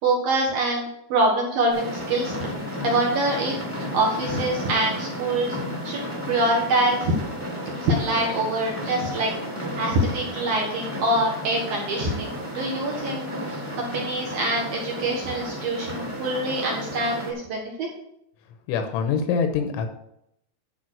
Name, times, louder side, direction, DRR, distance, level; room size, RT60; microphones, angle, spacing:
voice 1, 0.0-2.5 2.8-3.5 3.9-5.6 5.8-7.1 7.8-9.3 9.8-17.9, right 2 dB, 60° right, -3 dB, 2.6 m, -25 dB
sound 1, 1.7-17.3, equal, 5° right, 1.2 m, -33 dB
voice 2, 18.7-19.9, left 6 dB, 80° left, 6 dB, 3.1 m, -24 dB
11.5 x 5.0 x 6.2 m, 0.78 s
omnidirectional pair, 5.7 m